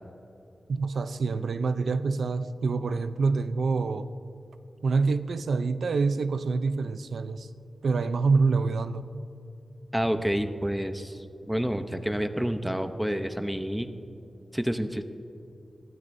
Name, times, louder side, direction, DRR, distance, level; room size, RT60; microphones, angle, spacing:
voice 1, 0.7-4.1 4.8-7.5 7.8-9.0, right 4 dB, 90° right, 11 dB, 0.6 m, -26 dB
voice 2, 9.9-11.2 11.5-13.9 14.5-15.0, equal, 5° right, 8 dB, 0.8 m, -28 dB
21.0 x 15.5 x 2.7 m, 2.8 s
wide cardioid pair, 100°, 0 cm